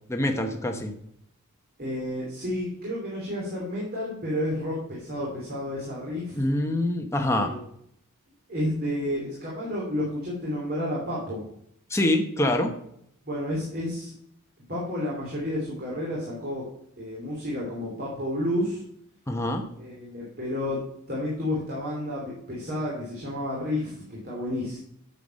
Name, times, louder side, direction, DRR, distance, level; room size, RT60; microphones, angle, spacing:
voice 1, 0.1-0.9 6.4-7.5 11.9-12.7 19.3-19.6, left 1 dB, 10° left, 3 dB, 0.9 m, -25 dB
voice 2, 1.8-6.4 7.4-7.6 8.5-11.4 13.2-14.1 14.7-16.7 17.0-18.8 19.8-20.8 21.1-24.8, left 1 dB, 45° right, -4 dB, 2.9 m, -31 dB
9.0 x 6.7 x 5.3 m, 0.71 s
head